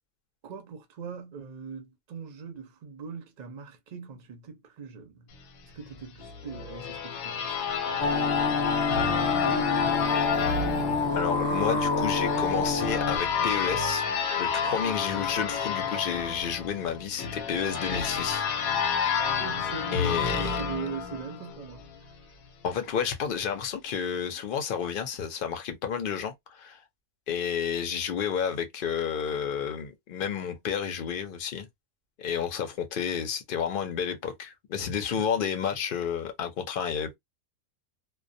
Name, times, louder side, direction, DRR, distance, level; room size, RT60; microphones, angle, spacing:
voice 1, 0.4-5.3 5.6-9.2 9.5-10.1 19.4-21.8, right 6 dB, 50° right, 0.5 m, -41 dB
sound 1, 6.2-21.9, left 6 dB, 90° left, 1.0 m, -29 dB
sound 2, 8.0-13.2, left 3 dB, 25° left, 0.8 m, -28 dB
voice 2, 11.2-14.1 14.4-18.4 19.9-20.5 22.6-26.8 27.3-31.7 32.2-37.2, left 7 dB, 60° left, 0.6 m, -31 dB
2.2 x 2.2 x 2.5 m
omnidirectional pair, 1.4 m